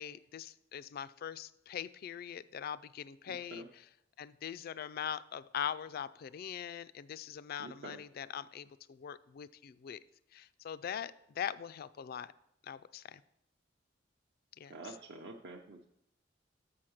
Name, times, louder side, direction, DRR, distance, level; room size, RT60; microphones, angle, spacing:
voice 1, 0.0-3.9 4.2-10.0 10.3-12.3 12.6-13.2 14.6-14.7, left 9 dB, 50° left, 16 dB, 0.3 m, -42 dB
voice 2, 3.3-3.7 7.6-8.0 14.7-15.9, right 2 dB, 65° right, 0 dB, 0.7 m, -48 dB
6.9 x 5.8 x 6.4 m, 0.79 s
head